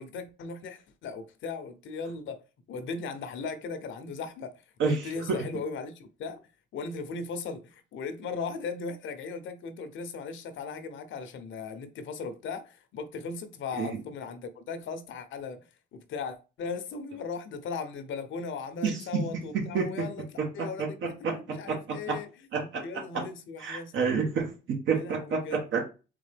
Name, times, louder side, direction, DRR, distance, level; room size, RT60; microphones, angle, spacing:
voice 1, 0.0-2.4 2.7-4.5 4.8-6.4 6.7-21.0 21.5-22.3 22.6-24.2 24.9-25.6, left 4 dB, 75° left, 0.8 m, -38 dB
voice 2, 4.8-5.4 13.7-14.0 18.8-19.2 19.5-20.1 20.4-22.2 22.5-23.2 23.6-25.8, right 5 dB, 70° right, 1.1 m, -30 dB
3.8 x 3.7 x 3.4 m
cardioid pair, 90°, 20 cm